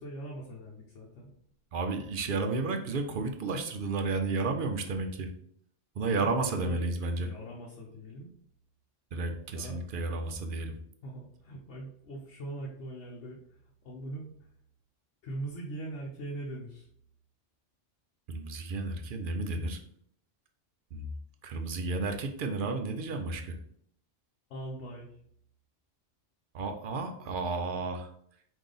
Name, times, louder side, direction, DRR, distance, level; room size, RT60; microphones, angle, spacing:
voice 1, 0.0-1.3 6.0-8.3 9.5-9.8 11.0-14.5 15.2-16.9 24.5-25.1, right 1 dB, 75° left, -2 dB, 1.1 m, -42 dB
voice 2, 1.7-5.3 6.0-7.3 9.1-10.7 18.3-19.8 20.9-21.1 21.4-23.6 26.5-28.1, right 3 dB, 55° right, 6 dB, 0.6 m, -32 dB
4.9 x 2.7 x 3.8 m, 0.67 s
omnidirectional pair, 1.2 m